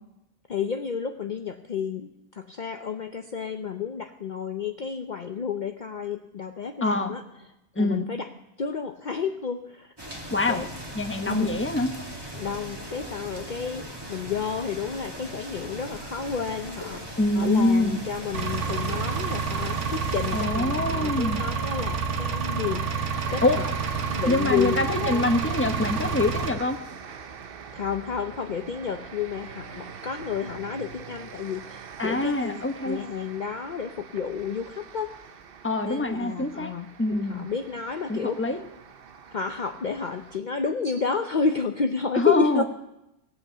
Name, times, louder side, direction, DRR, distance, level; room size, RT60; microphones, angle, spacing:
voice 1, 0.5-7.2 7.8-8.3 8.6-9.9 10.5-10.7 11.3-11.5 12.4-23.7 24.0-25.3 27.7-35.2 35.8-38.4 39.3-42.6, left 6 dB, 45° left, 6 dB, 0.8 m, -31 dB
voice 2, 6.8-7.1 7.7-8.1 10.3-10.6 10.9-11.9 17.2-18.0 20.3-21.4 23.4-23.6 24.3-26.8 32.0-33.0 35.6-36.7 37.0-37.5 38.1-38.6 42.1-42.6, left 2 dB, 10° left, 5 dB, 1.0 m, -25 dB
sound 1, 10.0-20.4, right 1 dB, 20° right, 2.2 m, -39 dB
Engine, 18.3-26.5, right 5 dB, 80° right, 1.4 m, -29 dB
sound 2, 22.8-40.4, right 6 dB, 55° right, 1.0 m, -43 dB
17.5 x 8.5 x 7.3 m, 0.89 s
omnidirectional pair, 1.2 m